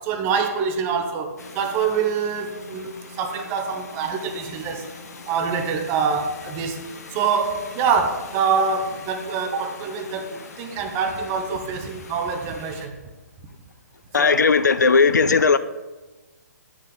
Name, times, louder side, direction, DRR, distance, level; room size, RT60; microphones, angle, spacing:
voice 1, 0.0-4.9 5.3-6.8 7.1-12.9 14.2-14.5, right 6 dB, 25° right, 0.7 m, -25 dB
sound 1, 1.4-12.9, left 4 dB, 60° left, 1.2 m, -42 dB
voice 2, 14.1-15.6, left 5 dB, 80° left, 0.4 m, -17 dB
9.3 x 5.4 x 3.7 m
figure-of-eight pair, 135°, 9 cm